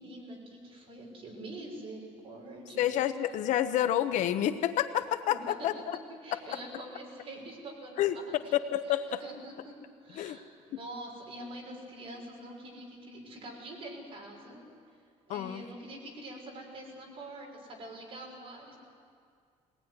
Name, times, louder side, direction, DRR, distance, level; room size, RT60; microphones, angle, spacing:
voice 1, 0.0-2.9 5.3-5.7 6.2-8.5 8.9-9.8 10.0-14.6 15.3-18.8, right 1 dB, 45° right, 0 dB, 6.1 m, -45 dB
voice 2, 2.8-6.0 6.3-6.6 8.0-9.2 10.1-10.4 15.3-15.6, left 11 dB, 75° left, 10 dB, 1.1 m, -29 dB
22.5 x 19.0 x 9.8 m, 2.2 s
cardioid pair, 155°, 13 cm